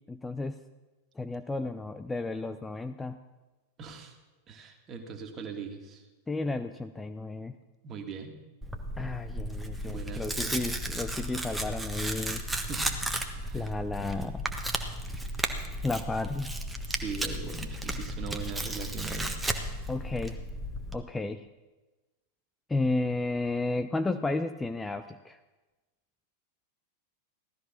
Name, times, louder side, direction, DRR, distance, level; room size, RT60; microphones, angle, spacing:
voice 1, 0.1-0.6 1.2-3.2 6.3-7.5 9.0-12.4 13.5-14.5 15.8-16.5 19.9-20.4 20.9-21.5 22.7-25.4, left 2 dB, 10° left, 8 dB, 0.6 m, -32 dB
voice 2, 3.8-4.2 4.5-6.1 7.8-8.4 9.8-10.7 12.6-13.0 13.4-13.7 16.9-19.3, right 5 dB, 30° right, 4 dB, 2.1 m, -40 dB
Tearing, 8.6-21.0, right 1 dB, 5° right, 1.4 m, -34 dB
16.0 x 13.0 x 6.0 m, 1.2 s
figure-of-eight pair, 90°, 0 cm